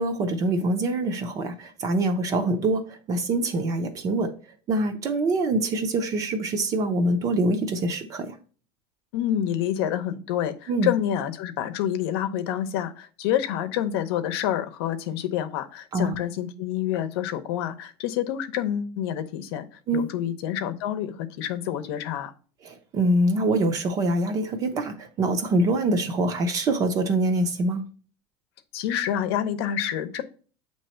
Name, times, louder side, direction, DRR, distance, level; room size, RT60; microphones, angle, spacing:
voice 1, 0.0-4.3 4.7-8.3 10.7-10.9 15.9-16.2 19.9-20.1 22.6-27.8, right 2 dB, 25° right, 0.6 m, -24 dB
voice 2, 9.1-19.7 19.9-22.3 28.7-30.2, left 10 dB, 75° left, 0.8 m, -28 dB
7.7 x 3.0 x 4.3 m
cardioid pair, 180°, 13 cm